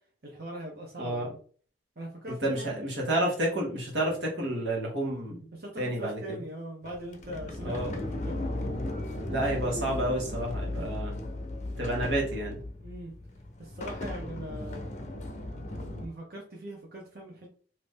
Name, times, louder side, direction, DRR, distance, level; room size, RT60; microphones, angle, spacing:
voice 1, 0.2-1.4 2.0-2.8 5.5-8.7 12.8-13.1 13.6-14.9 16.0-17.5, equal, 55° right, -2 dB, 0.9 m, -41 dB
voice 2, 2.4-5.5 5.8-6.4 7.6-7.9 9.3-11.1 11.8-12.6, right 1 dB, 85° right, -2 dB, 1.4 m, -30 dB
Sliding door, 6.8-16.1, left 1 dB, 40° left, 0.6 m, -36 dB
2.9 x 2.6 x 3.5 m, 0.43 s
head